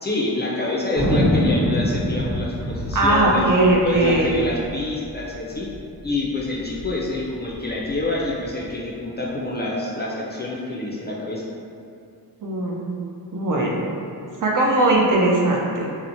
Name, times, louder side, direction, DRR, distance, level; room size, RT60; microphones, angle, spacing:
voice 1, 0.0-3.5 3.8-5.7 6.0-11.4, left 2 dB, 25° left, -5 dB, 0.4 m, -27 dB
Thunder, 1.0-5.8 6.0-6.1 6.4-6.9 7.4-8.6, equal, 35° right, 0.8 m, -25 dB
voice 2, 2.9-4.3 12.4-12.9 13.3-13.8 14.4-15.9, right 2 dB, 55° right, -2 dB, 0.5 m, -19 dB
2.8 x 2.1 x 2.5 m, 2.5 s
wide cardioid pair, 60°, 40 cm